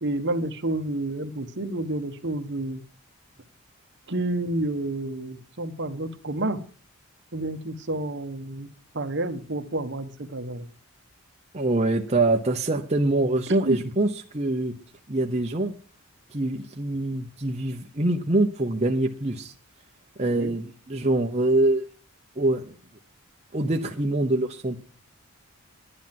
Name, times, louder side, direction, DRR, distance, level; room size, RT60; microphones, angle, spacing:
voice 1, 0.0-2.8 4.1-6.6 7.3-8.7 8.9-10.6 13.6-13.8 20.3-20.5, right 2 dB, 50° right, 8 dB, 1.2 m, -29 dB
voice 2, 11.5-14.7 15.1-15.7 16.3-19.5 20.2-21.8 22.4-22.7 23.5-24.8, right 2 dB, 30° right, 2 dB, 0.9 m, -24 dB
11.0 x 9.8 x 5.9 m, 0.39 s
head